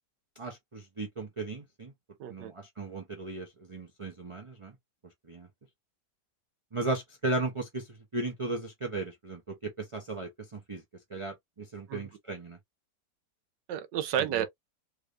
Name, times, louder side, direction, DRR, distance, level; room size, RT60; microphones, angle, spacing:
voice 1, 0.4-1.9 2.3-4.7 5.3-5.5 6.7-7.9 8.1-10.8 11.1-12.6 14.2-14.5, right 2 dB, 35° right, 0.5 m, -36 dB
voice 2, 2.2-2.5 11.9-12.1 13.7-14.5, right 10 dB, 85° right, 1.4 m, -31 dB
3.3 x 3.2 x 2.5 m
omnidirectional pair, 1.8 m